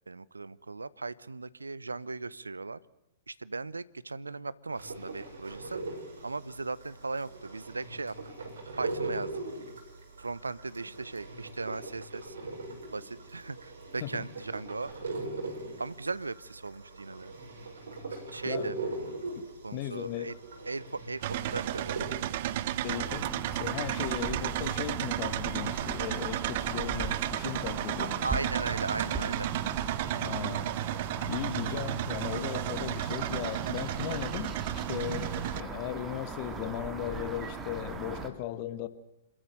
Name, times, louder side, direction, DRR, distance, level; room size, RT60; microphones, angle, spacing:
voice 1, 0.1-2.8 3.3-5.8 6.2-8.1 8.8-9.3 10.2-12.3 12.9-14.9 15.8-17.3 18.3-18.8 19.6-20.3 20.7-21.8 28.2-29.5, right 3 dB, 80° right, 0.8 m, -37 dB
sound 1, 4.7-22.1, right 3 dB, 65° right, 6.7 m, -40 dB
voice 2, 19.3-20.4 22.8-28.3 30.2-30.7 31.2-34.6 34.9-38.9, left 13 dB, 45° left, 1.5 m, -37 dB
sound 2, 21.2-35.6, right 13 dB, 50° right, 0.9 m, -33 dB
sound 3, 22.9-38.3, right 4 dB, 15° right, 2.6 m, -40 dB
27.0 x 14.0 x 9.1 m
figure-of-eight pair, 110°, 0 cm